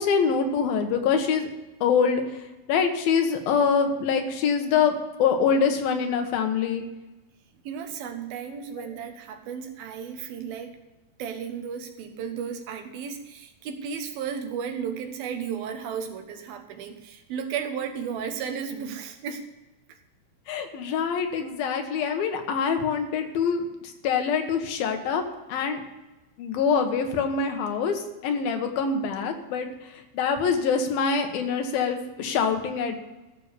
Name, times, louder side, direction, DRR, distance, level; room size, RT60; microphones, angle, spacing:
voice 1, 0.0-1.5 1.8-4.9 5.2-6.8 8.8-8.9 20.5-25.2 25.5-25.8 26.4-29.7 29.9-33.0, left 6 dB, 85° left, 5 dB, 3.1 m, -25 dB
voice 2, 7.6-10.8 11.2-19.5 19.9-20.0, right 7 dB, 85° right, 6 dB, 3.1 m, -34 dB
14.0 x 6.7 x 6.7 m, 1.1 s
omnidirectional pair, 4.1 m